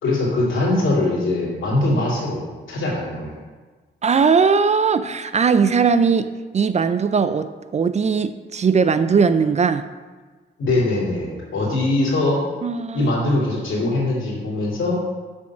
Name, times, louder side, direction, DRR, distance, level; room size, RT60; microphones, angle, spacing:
voice 1, 0.0-3.4 10.6-12.4 12.9-15.1, left 2 dB, 85° left, -4 dB, 2.7 m, -22 dB
voice 2, 4.0-9.9 12.6-13.1, right 5 dB, 35° right, 12 dB, 0.4 m, -19 dB
7.0 x 5.2 x 6.0 m, 1.4 s
cardioid pair, 90°, 20 cm